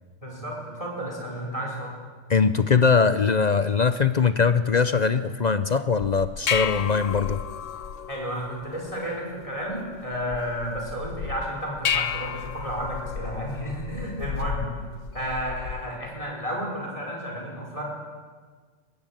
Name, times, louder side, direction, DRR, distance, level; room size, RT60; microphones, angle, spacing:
voice 1, 0.2-2.0 8.1-14.7 15.1-17.8, equal, 25° left, -1 dB, 5.1 m, -32 dB
voice 2, 2.3-7.4, left 5 dB, 45° left, 11 dB, 0.6 m, -21 dB
sound 1, 6.0-16.0, left 7 dB, 75° left, 1.3 m, -33 dB
21.5 x 15.5 x 8.8 m, 1.5 s
omnidirectional pair, 1.3 m